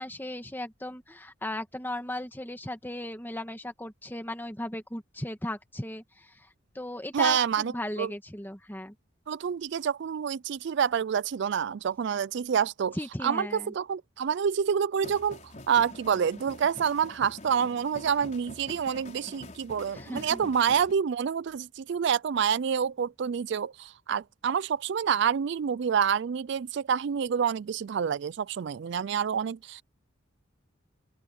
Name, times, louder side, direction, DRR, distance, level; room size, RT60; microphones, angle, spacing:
voice 1, 0.0-6.5 6.8-8.9 12.9-13.7 19.9-20.4, left 1 dB, 10° left, 2.0 m, -36 dB
voice 2, 7.1-8.1 9.3-13.0 13.2-15.4 15.7-29.8, right 7 dB, 60° right, 0.4 m, -27 dB
sound 1, 15.0-20.9, left 2 dB, 35° left, 4.7 m, -46 dB
open air
head